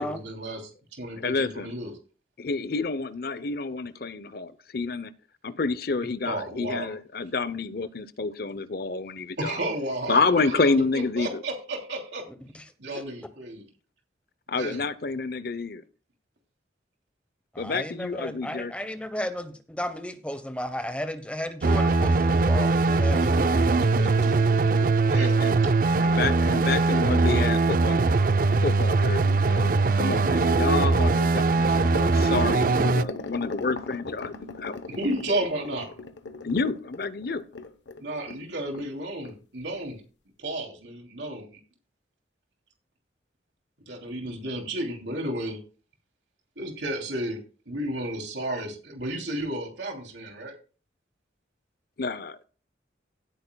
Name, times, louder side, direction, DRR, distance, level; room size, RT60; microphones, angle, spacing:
voice 1, 0.0-1.9 6.2-6.9 9.4-10.2 10.4-12.2 12.8-13.6 14.6-14.8 22.9-24.5 25.1-25.4 34.9-36.0 38.0-40.0 40.4-41.6 43.9-45.6 46.6-47.4 47.7-50.5, right 1 dB, 80° right, 2.9 m, -33 dB
voice 2, 1.2-1.7 2.4-5.1 5.4-9.6 10.1-11.4 14.5-15.8 17.6-18.7 25.1-25.7 26.0-28.0 28.6-34.8 36.4-37.4 52.0-52.4, left 3 dB, 55° left, 0.7 m, -29 dB
voice 3, 12.5-13.0 17.5-23.7, left 1 dB, 5° left, 0.9 m, -34 dB
sound 1, 21.6-33.0, right 3 dB, 50° right, 0.4 m, -21 dB
sound 2, 23.5-28.2 31.6-38.4 38.7-38.9 39.2-39.4 39.8-39.9, left 3 dB, 80° left, 0.9 m, -39 dB
16.5 x 8.7 x 2.3 m
head